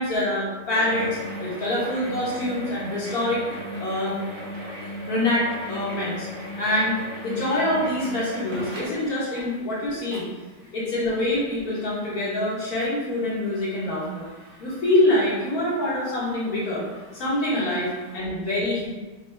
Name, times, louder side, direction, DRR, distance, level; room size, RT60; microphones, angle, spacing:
voice 1, 0.0-3.4 3.8-4.2 5.1-6.3 6.6-10.2 10.7-14.3 14.6-16.9 17.1-18.9, left 1 dB, 60° left, -7 dB, 1.7 m, -25 dB
sound 1, 0.7-18.2, equal, 50° right, 1.4 m, -38 dB
5.4 x 2.8 x 3.3 m, 1.2 s
omnidirectional pair, 1.9 m